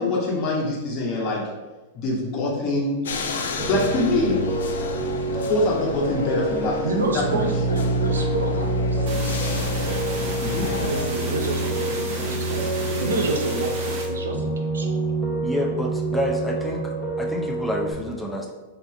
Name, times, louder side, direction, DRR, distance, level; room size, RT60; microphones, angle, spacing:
voice 1, 0.0-1.4 1.9-3.0 3.7-4.5 5.3-6.8 7.1-7.5 10.4-10.7, left 2 dB, 40° left, -3 dB, 1.2 m, -24 dB
sound 1, 3.0-11.1, left 4 dB, 75° left, 0.4 m, -32 dB
Piano, 3.6-17.9, right 1 dB, 20° left, 0.9 m, -27 dB
voice 2, 6.8-10.0 10.6-14.9, right 2 dB, 90° right, 3 dB, 0.5 m, -30 dB
sound 2, 9.1-14.1, right 2 dB, 50° right, 1.0 m, -33 dB
voice 3, 15.4-16.9 17.2-18.5, left 1 dB, 5° left, 0 dB, 0.5 m, -28 dB
3.3 x 2.4 x 3.7 m, 1.2 s
hypercardioid pair, 110°, 0 cm